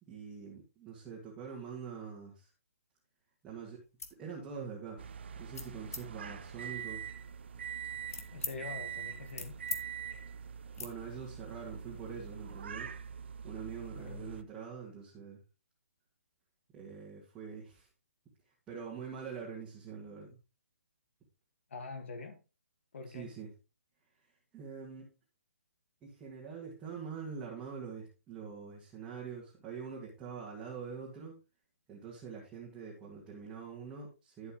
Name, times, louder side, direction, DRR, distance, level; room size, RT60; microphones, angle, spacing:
voice 1, 0.0-2.5 3.4-3.8 4.1-5.0 5.4-7.1 10.8-12.9 13.4-15.4 16.7-17.9 18.5-20.4 23.1-23.5 24.2-25.1 26.0-31.4 31.9-34.5, right 6 dB, 10° right, 1.9 m, -45 dB
sound 1, 3.8-4.2 4.7-5.0 5.5-6.0 6.7-8.6 9.0-9.8 10.1-10.3 10.7-10.9, left 4 dB, 90° left, 1.7 m, -43 dB
sound 2, 5.0-14.4, right 8 dB, 50° right, 0.6 m, -44 dB
voice 2, 8.3-9.6 13.9-14.4 21.7-22.4 22.9-23.3, left 4 dB, 55° left, 1.9 m, -44 dB
11.0 x 7.8 x 3.1 m
hypercardioid pair, 165°, 8 cm